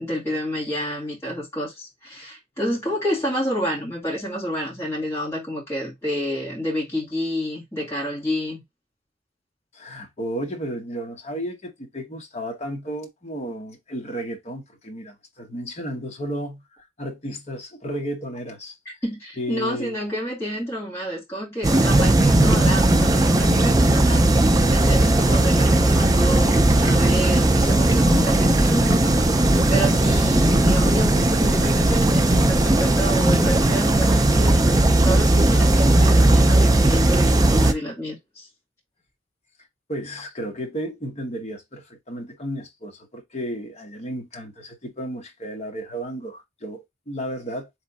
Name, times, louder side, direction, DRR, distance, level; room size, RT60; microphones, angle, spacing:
voice 1, 0.0-8.6 19.0-24.3 24.7-29.3 29.7-34.6 35.0-38.5, equal, 15° left, 2.2 m, -29 dB
voice 2, 9.7-16.6 17.0-18.7 19.4-20.0 39.9-47.7, equal, 35° left, 1.1 m, -33 dB
sound 1, 21.6-37.7, right 1 dB, 20° right, 0.5 m, -17 dB
3.7 x 3.2 x 4.0 m
head